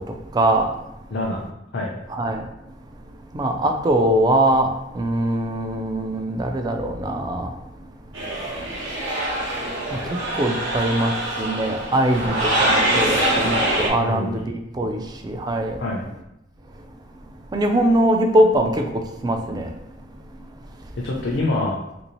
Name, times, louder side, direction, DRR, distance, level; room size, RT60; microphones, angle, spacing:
voice 1, 0.3-0.7 2.1-2.4 3.3-4.7 4.9-7.5 9.9-10.0 10.3-11.1 11.4-15.8 17.5-18.9 19.2-19.7, right 1 dB, 20° right, 4 dB, 0.3 m, -21 dB
voice 2, 1.1-1.4 1.7-1.9 14.0-14.5 15.8-16.0 21.0-21.8, left 2 dB, 65° left, -3 dB, 0.5 m, -25 dB
sound 1, 8.1-13.9, right 1 dB, 85° right, 1.0 m, -24 dB
3.3 x 2.7 x 3.0 m, 0.87 s
head